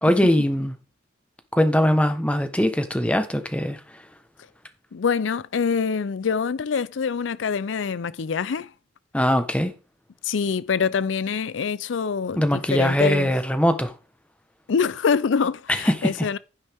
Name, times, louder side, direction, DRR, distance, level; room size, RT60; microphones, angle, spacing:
voice 1, 0.0-0.7 1.5-3.8 9.1-9.7 12.3-13.9 15.9-16.1, equal, 5° left, 1.1 m, -21 dB
voice 2, 4.9-8.7 10.2-13.3 14.7-16.4, left 6 dB, 90° left, 0.5 m, -25 dB
11.5 x 9.8 x 3.5 m
head